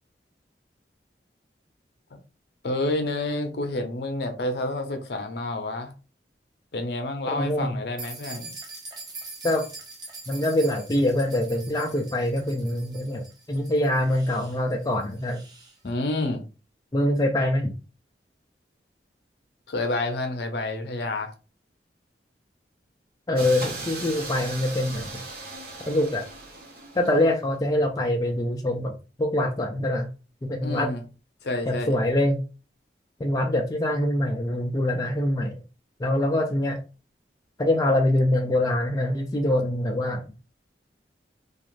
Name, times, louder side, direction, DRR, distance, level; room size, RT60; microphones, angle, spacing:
voice 1, 2.6-5.9 6.7-8.5 15.8-16.4 19.7-21.3 30.6-31.0 31.4-32.0, left 2 dB, 65° left, 0.6 m, -29 dB
voice 2, 7.3-7.7 9.4-9.6 10.3-15.4 16.9-17.7 23.3-25.1 25.9-26.3 27.0-28.9 29.2-30.1 30.4-30.9 31.7-32.4 33.2-35.6 36.0-36.8 37.6-40.2, left 1 dB, 20° left, 0.3 m, -24 dB
sound 1, 8.0-15.8, right 3 dB, 25° right, 0.6 m, -43 dB
sound 2, 23.4-27.4, right 3 dB, 50° right, 0.9 m, -38 dB
2.4 x 2.4 x 3.0 m
head